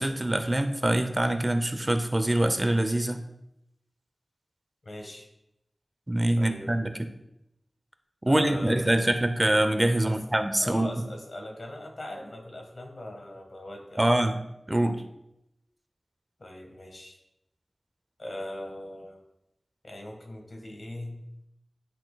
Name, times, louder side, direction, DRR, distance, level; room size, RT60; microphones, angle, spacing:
voice 1, 0.0-3.2 6.1-6.9 8.3-10.9 14.0-14.4 14.7-15.0, right 1 dB, 25° right, 8 dB, 0.6 m, -24 dB
voice 2, 4.8-5.3 6.4-6.7 8.2-9.2 10.0-10.2 10.6-14.2 16.4-17.2 18.2-19.2 19.8-21.2, left 1 dB, 65° left, 2 dB, 1.4 m, -40 dB
10.5 x 6.0 x 2.3 m, 0.84 s
wide cardioid pair, 50°, 0 cm